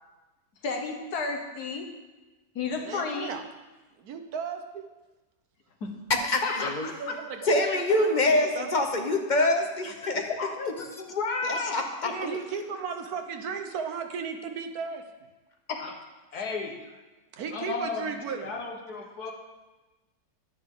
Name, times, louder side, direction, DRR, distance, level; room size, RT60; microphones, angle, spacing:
voice 1, 0.6-1.9 2.6-3.3 5.8-5.9 6.4-7.1 10.4-11.8 12.0-12.4 15.7-16.0 16.3-16.8 17.5-19.3, left 4 dB, 80° left, 3 dB, 1.8 m, -33 dB
voice 2, 2.8-3.4 4.0-4.8 6.6-8.7 12.1-15.0 17.3-18.5, right 6 dB, 75° right, 6 dB, 1.4 m, -36 dB
voice 3, 6.2-6.9 7.5-10.2 11.4-11.8 12.2-12.3, left 2 dB, 35° left, 3 dB, 0.9 m, -25 dB
11.0 x 10.0 x 3.8 m, 1.1 s
omnidirectional pair, 1.6 m